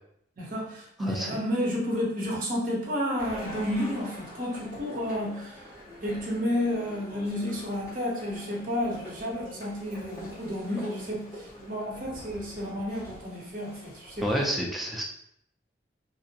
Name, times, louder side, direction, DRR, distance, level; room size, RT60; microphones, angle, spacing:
voice 1, 0.4-5.6 6.0-14.3, left 1 dB, 45° right, -2 dB, 0.7 m, -31 dB
voice 2, 1.0-1.4 14.2-15.0, equal, ahead, -2 dB, 0.3 m, -29 dB
sound 1, 3.2-14.5, equal, 15° left, 1.0 m, -44 dB
2.6 x 2.0 x 2.7 m, 0.73 s
head